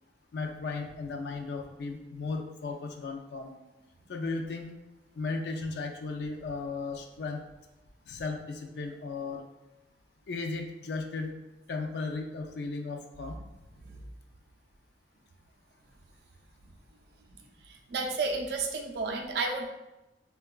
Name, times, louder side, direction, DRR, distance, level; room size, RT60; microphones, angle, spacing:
voice 1, 0.3-3.5 4.1-4.7 5.2-7.4 8.1-9.4 10.3-11.3 11.7-13.4, left 3 dB, 70° left, 3 dB, 0.4 m, -35 dB
voice 2, 17.7-19.7, right 3 dB, 60° right, 2 dB, 0.4 m, -32 dB
3.6 x 2.2 x 2.3 m, 0.99 s
head